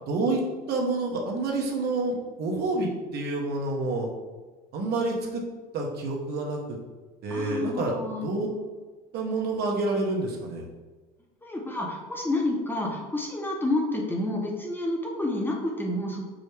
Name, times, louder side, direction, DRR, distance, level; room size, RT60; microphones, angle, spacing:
voice 1, 0.1-0.4 0.7-4.1 4.7-5.4 5.7-6.8 7.2-7.9 8.2-8.5 9.1-10.6, right 2 dB, 55° right, 0 dB, 0.9 m, -28 dB
voice 2, 7.3-8.3 11.4-16.3, left 2 dB, 10° left, -1 dB, 0.7 m, -29 dB
4.8 x 2.1 x 3.2 m, 1.3 s
hypercardioid pair, 80°, 21 cm